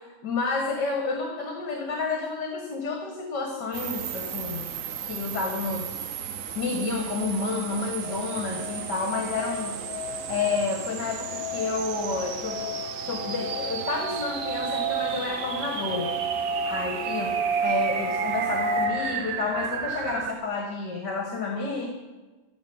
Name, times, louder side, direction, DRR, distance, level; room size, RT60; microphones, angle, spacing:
voice 1, 0.2-4.7 5.0-5.9 6.6-9.8 10.3-12.6 13.0-16.1 16.7-21.9, left 4 dB, 65° left, 2 dB, 2.2 m, -30 dB
sound 1, 3.7-20.3, right 8 dB, 60° right, 0.9 m, -35 dB
sound 2, 8.0-18.9, right 3 dB, 35° left, 4.0 m, -32 dB
12.0 x 9.4 x 9.5 m, 1.2 s
omnidirectional pair, 2.0 m